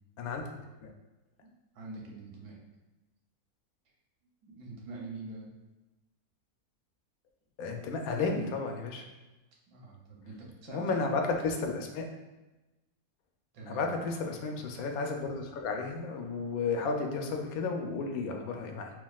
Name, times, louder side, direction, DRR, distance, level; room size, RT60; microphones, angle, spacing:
voice 1, 0.2-0.5 0.8-0.9 7.6-9.0 10.7-12.1 13.7-18.9, left 4 dB, 75° left, 3 dB, 1.0 m, -33 dB
voice 2, 1.4-2.6 4.4-5.5 9.7-11.1 13.5-14.0, right 3 dB, 85° right, -2 dB, 1.3 m, -45 dB
5.7 x 2.4 x 2.3 m, 1.1 s
omnidirectional pair, 1.6 m